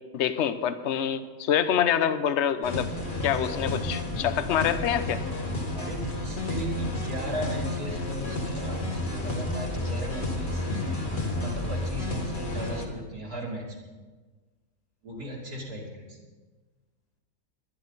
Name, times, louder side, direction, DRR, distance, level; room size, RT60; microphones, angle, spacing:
voice 1, 0.1-2.9 3.2-5.2, left 9 dB, 55° left, 11 dB, 1.0 m, -26 dB
sound 1, 2.6-12.9, left 2 dB, 35° left, 2.0 m, -31 dB
voice 2, 5.7-11.1 11.4-13.8 15.0-16.2, right 1 dB, 75° right, -5 dB, 3.2 m, -36 dB
22.5 x 10.5 x 4.1 m, 1.3 s
omnidirectional pair, 1.6 m